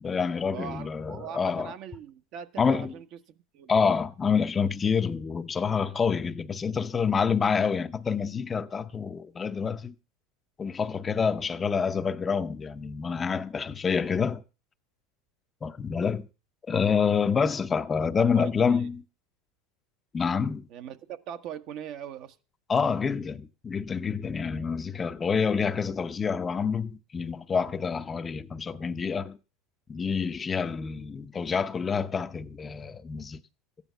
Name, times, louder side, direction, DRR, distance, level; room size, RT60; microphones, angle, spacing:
voice 1, 0.0-1.7 2.6-2.9 3.7-9.9 10.6-14.4 15.6-16.3 16.7-19.0 20.1-20.7 22.7-29.4 29.9-33.4, left 6 dB, 20° left, 0.8 m, -27 dB
voice 2, 0.5-3.7 18.2-18.8 20.7-22.4, right 9 dB, 55° right, 1.3 m, -41 dB
14.0 x 9.9 x 5.7 m
supercardioid pair, 115°, 0 cm